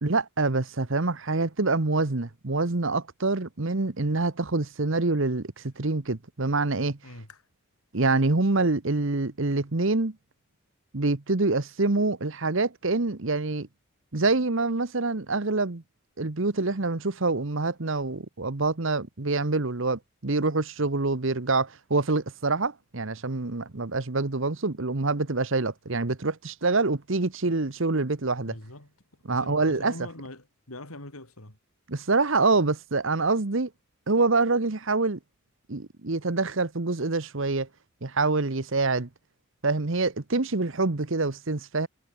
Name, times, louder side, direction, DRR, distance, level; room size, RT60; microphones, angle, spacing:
voice 1, 0.0-7.0 7.9-10.1 10.9-13.7 14.1-15.8 16.2-28.5 29.3-29.9 31.9-33.7 34.1-35.2 35.7-37.7 38.0-39.1 39.6-41.9, right 3 dB, 60° right, 1.1 m, -26 dB
voice 2, 7.0-7.4 28.4-28.9 29.3-31.6, left 1 dB, 80° left, 5.4 m, -43 dB
head